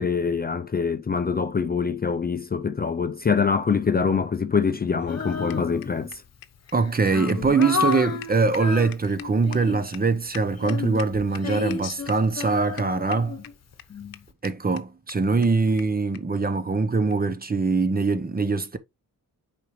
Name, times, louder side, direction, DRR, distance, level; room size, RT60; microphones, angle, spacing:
voice 1, 0.0-6.2 13.9-14.1, left 5 dB, 30° left, 0.5 m, -24 dB
sound 1, 4.7-11.4 11.7-11.8 12.1-12.5 12.8-13.5 13.8-13.9 14.1-14.2 14.4-14.5 14.8-14.9 15.1-15.2 15.4-15.5 15.8-15.9 16.1-16.2 17.1-17.2, left 11 dB, 80° left, 0.8 m, -42 dB
Female singing, 5.1-6.1 6.7-10.0 10.6-13.7, left 5 dB, 50° left, 1.0 m, -31 dB
voice 2, 6.7-13.4 14.4-18.8, right 4 dB, 25° right, 0.8 m, -23 dB
8.1 x 5.2 x 3.1 m
wide cardioid pair, 130°, 34 cm